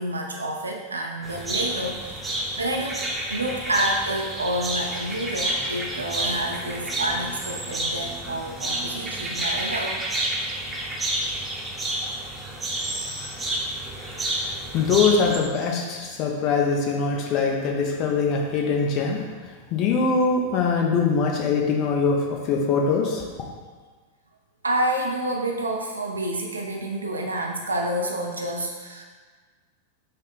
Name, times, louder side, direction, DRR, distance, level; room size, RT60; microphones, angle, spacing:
voice 1, 0.0-2.1 2.6-3.0 3.3-10.0 24.6-29.0, right 1 dB, 80° right, 1 dB, 0.3 m, -28 dB
sound 1, 1.2-15.4, right 1 dB, 10° right, 0.7 m, -30 dB
voice 2, 14.0-14.4 14.7-19.2 19.7-23.2, left 5 dB, 40° left, 0 dB, 0.5 m, -23 dB
5.3 x 2.1 x 3.8 m, 1.5 s
figure-of-eight pair, 90°, 0 cm